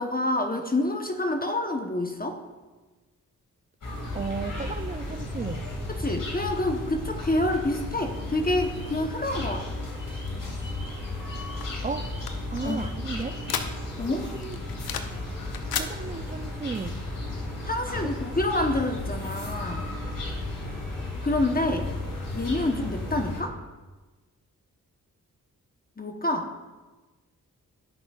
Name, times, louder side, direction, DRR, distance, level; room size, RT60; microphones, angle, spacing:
voice 1, 0.0-2.4 5.9-9.7 12.6-12.8 14.0-14.3 17.6-19.8 21.2-21.9 22.3-23.6 26.0-26.5, left 1 dB, 25° left, 3 dB, 1.0 m, -27 dB
sound 1, 3.8-23.4, left 2 dB, 60° left, 2.4 m, -34 dB
voice 2, 4.1-5.6 11.8-12.1 12.5-13.4 14.1-14.6 15.8-17.0, right 5 dB, 25° right, 8 dB, 0.4 m, -34 dB
sound 2, 11.6-14.1 14.4-15.2 15.5-15.9, left 8 dB, 80° left, 0.7 m, -34 dB
16.0 x 6.2 x 2.4 m, 1.2 s
supercardioid pair, 40°, 36 cm